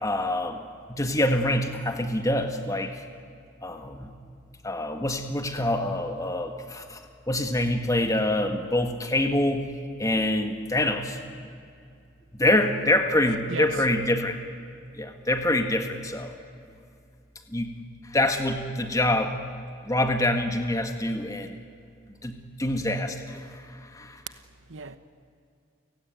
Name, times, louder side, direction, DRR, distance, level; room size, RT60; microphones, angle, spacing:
voice 1, 0.0-0.6 0.9-2.9 3.6-4.1 4.6-7.0 7.3-9.7 10.0-11.2 12.3-14.4 14.9-16.3 17.5-17.7 18.1-19.4 19.8-21.5 22.2-24.2, left 1 dB, 15° left, 1.7 m, -26 dB
voice 2, 13.2-14.0 24.7-25.0, right 4 dB, 80° right, 1.2 m, -36 dB
30.0 x 16.5 x 9.5 m
head